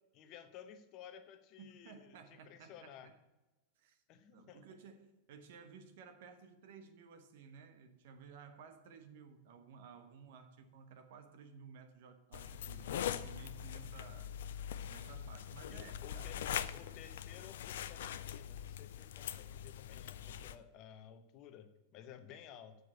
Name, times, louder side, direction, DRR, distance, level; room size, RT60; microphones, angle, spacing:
voice 1, 0.1-3.1 4.1-4.6 15.7-22.8, left 9 dB, 40° left, 10 dB, 0.9 m, -55 dB
voice 2, 1.6-3.2 3.8-4.0 4.3-14.3 14.9-16.4 20.5-20.6, right 6 dB, 55° right, 7 dB, 1.2 m, -56 dB
sound 1, 12.3-20.5, left 10 dB, 60° left, 0.4 m, -42 dB
7.6 x 6.4 x 7.9 m, 1.1 s
figure-of-eight pair, 90°, 0 cm